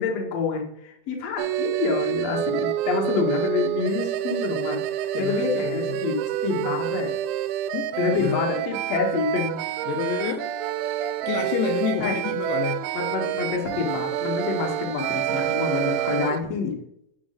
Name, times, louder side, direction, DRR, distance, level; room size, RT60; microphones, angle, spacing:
voice 1, 0.0-6.2 6.4-7.1 8.0-9.6 12.0-12.1 12.9-16.7, left 6 dB, 70° left, 0 dB, 1.5 m, -27 dB
sound 1, 1.4-16.4, right 12 dB, 85° right, 2.9 m, -27 dB
voice 2, 5.1-5.9 7.7-8.4 9.9-10.5 11.3-12.9, left 9 dB, 85° left, 4 dB, 2.4 m, -29 dB
8.6 x 5.0 x 3.9 m, 0.75 s
omnidirectional pair, 5.4 m